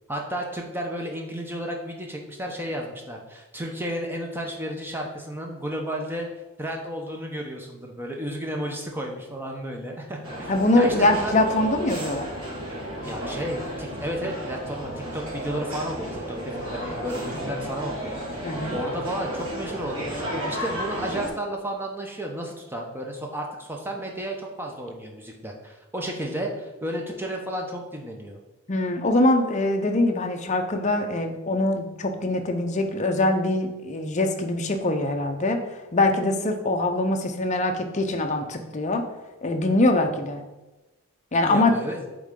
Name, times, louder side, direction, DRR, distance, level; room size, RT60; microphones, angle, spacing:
voice 1, 0.1-6.3 6.6-10.5 10.7-11.3 13.0-28.4 41.5-42.0, equal, 10° right, 1 dB, 0.7 m, -32 dB
sound 1, 10.2-21.3, equal, 65° right, 2.1 m, -33 dB
voice 2, 10.5-12.3 18.4-18.8 28.7-35.6 35.9-39.0 39.4-40.4 41.3-41.7, left 2 dB, 30° left, 4 dB, 0.6 m, -23 dB
7.7 x 3.7 x 3.7 m, 1.1 s
head